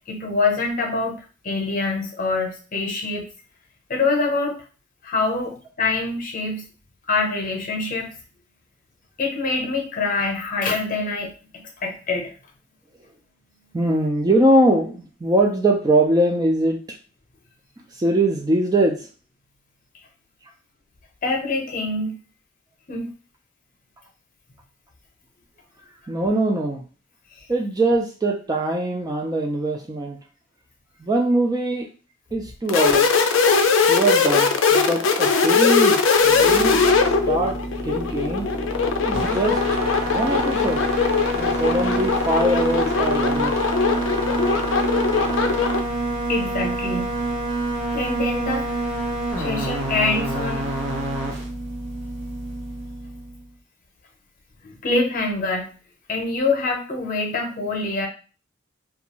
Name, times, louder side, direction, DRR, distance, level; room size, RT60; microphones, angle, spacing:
voice 1, 0.1-1.2 1.4-3.3 3.9-4.6 5.0-6.7 7.1-8.1 9.2-12.3 21.2-22.1 22.9-23.1 46.3-47.1 47.9-48.8 49.4-50.7 54.6-55.7 56.1-58.1, left 3 dB, 45° left, 1 dB, 0.8 m, -25 dB
voice 2, 13.7-16.8 18.0-19.0 26.1-26.8 27.5-30.2 31.0-31.9 32.3-33.3 33.9-37.6 37.8-38.5 39.0-39.8 40.1-40.9 41.3-43.6, right 1 dB, 20° right, 2 dB, 0.3 m, -22 dB
sound 1, 32.7-45.8, left 5 dB, 70° left, 0.4 m, -20 dB
sound 2, 36.2-53.4, right 2 dB, 85° right, 0.8 m, -27 dB
2.5 x 2.3 x 2.9 m, 0.37 s
head